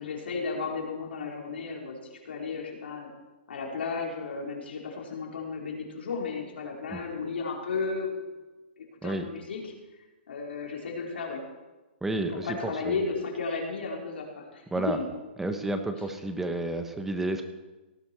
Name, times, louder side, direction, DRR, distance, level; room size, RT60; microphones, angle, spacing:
voice 1, 0.0-3.1 3.5-8.2 8.8-9.6 10.3-11.4 12.3-15.0, left 4 dB, 85° left, -1 dB, 4.6 m, -34 dB
voice 2, 12.0-13.0 14.7-15.0 15.4-17.4, right 2 dB, 5° right, 7 dB, 1.1 m, -31 dB
18.0 x 11.0 x 4.7 m, 1.1 s
hypercardioid pair, 150°, 6 cm